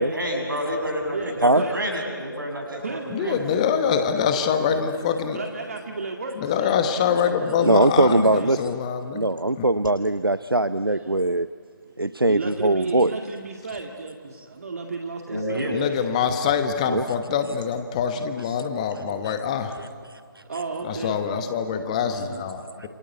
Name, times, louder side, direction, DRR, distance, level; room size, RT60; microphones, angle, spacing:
voice 1, 0.0-3.4 15.3-15.8, equal, 65° right, 2 dB, 7.7 m, -29 dB
voice 2, 1.1-1.8 2.8-3.4 4.4-4.6 5.3-8.9 10.8-11.3 11.8-16.5 20.4-21.2 22.1-22.4, right 3 dB, 45° right, 2 dB, 2.1 m, -34 dB
voice 3, 3.1-5.4 6.4-9.3 9.6-9.7 15.7-19.7 20.8-22.9, left 7 dB, 20° left, 8 dB, 1.1 m, -25 dB
voice 4, 7.6-8.8 9.1-11.5 12.0-13.1 16.9-17.0 19.2-19.3 19.8-19.9 21.9-22.0 22.8-22.9, right 2 dB, 90° right, 14 dB, 0.7 m, -21 dB
27.5 x 26.5 x 8.1 m, 2.1 s
figure-of-eight pair, 150°, 12 cm